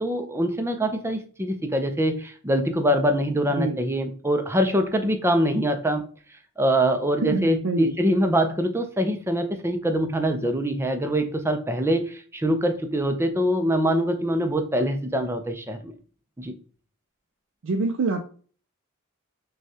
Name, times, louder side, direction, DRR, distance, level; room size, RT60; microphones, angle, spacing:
voice 1, 0.0-6.0 6.6-15.9 16.4-16.5, equal, 10° right, 6 dB, 0.5 m, -24 dB
voice 2, 7.2-7.9 17.6-18.2, right 3 dB, 60° right, 3 dB, 0.5 m, -25 dB
6.2 x 2.3 x 2.8 m, 0.41 s
head